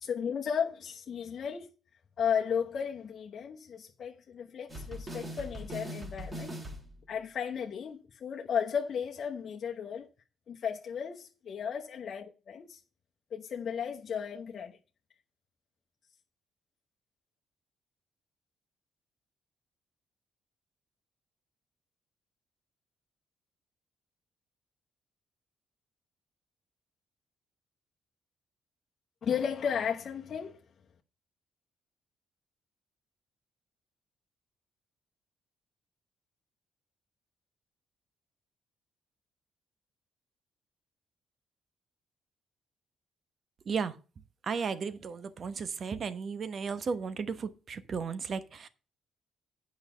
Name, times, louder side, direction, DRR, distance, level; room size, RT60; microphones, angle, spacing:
voice 1, 0.0-1.7 2.2-6.5 7.1-10.1 10.5-12.8 13.3-14.8 29.2-30.6, left 7 dB, 55° left, 1.0 m, -34 dB
sound 1, 4.7-7.1, right 1 dB, 25° right, 2.5 m, -41 dB
voice 2, 43.6-44.0 44.4-48.7, right 5 dB, 50° right, 1.0 m, -34 dB
9.1 x 5.6 x 6.5 m
cardioid pair, 90°, 0 cm